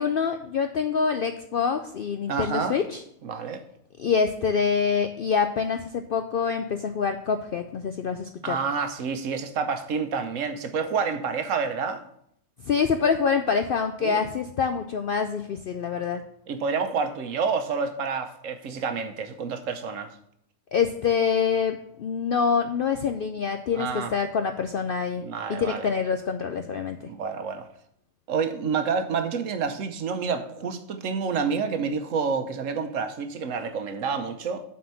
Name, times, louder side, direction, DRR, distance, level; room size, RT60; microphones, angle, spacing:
voice 1, 0.0-3.0 4.0-8.6 12.7-16.2 20.7-25.2 25.5-27.1, left 6 dB, 65° left, 0.5 m, -26 dB
voice 2, 2.3-2.7 3.2-3.6 8.4-12.0 14.0-14.2 16.5-20.1 23.7-24.1 25.2-25.9 27.0-27.7 28.3-34.6, right 5 dB, 70° right, 1.1 m, -28 dB
7.4 x 4.4 x 6.8 m
omnidirectional pair, 1.4 m